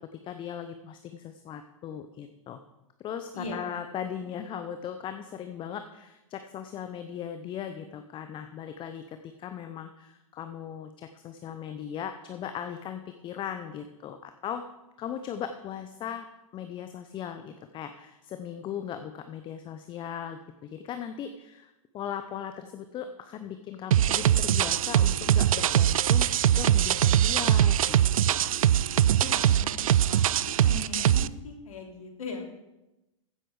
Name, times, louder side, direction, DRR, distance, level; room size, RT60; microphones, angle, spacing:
voice 1, 0.2-2.6 3.0-14.6 15.0-16.2 16.5-26.3 26.6-28.0 28.3-28.4, left 9 dB, 30° left, 8 dB, 0.8 m, -38 dB
voice 2, 3.3-3.8 29.1-30.2 30.5-32.4, left 3 dB, 80° left, 2 dB, 3.1 m, -39 dB
sound 1, 23.9-31.3, right 11 dB, 80° right, 0.4 m, -22 dB
15.0 x 7.8 x 5.0 m, 0.96 s
hypercardioid pair, 110°, 18 cm